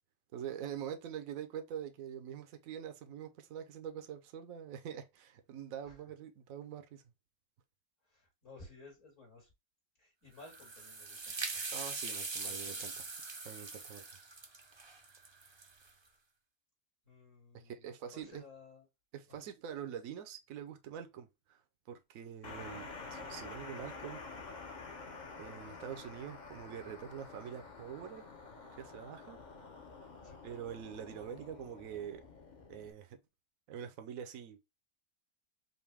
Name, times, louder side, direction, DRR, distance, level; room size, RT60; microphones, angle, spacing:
voice 1, 0.3-7.0 11.7-12.9 13.4-14.0 17.5-18.4 19.1-21.6 21.9-24.2 25.4-28.3 28.7-29.4 30.4-32.2 32.7-33.2 33.7-34.6, right 9 dB, 75° right, 1.1 m, -45 dB
voice 2, 8.0-9.5 10.0-11.6 12.4-13.1 15.8-16.2 17.0-18.9 19.3-19.5 30.2-30.4, left 3 dB, 60° left, 2.9 m, -57 dB
sound 1, 10.4-15.9, right 3 dB, 30° right, 0.5 m, -42 dB
sound 2, 22.4-32.9, left 4 dB, 35° left, 1.0 m, -49 dB
5.4 x 2.6 x 3.4 m
omnidirectional pair, 1.4 m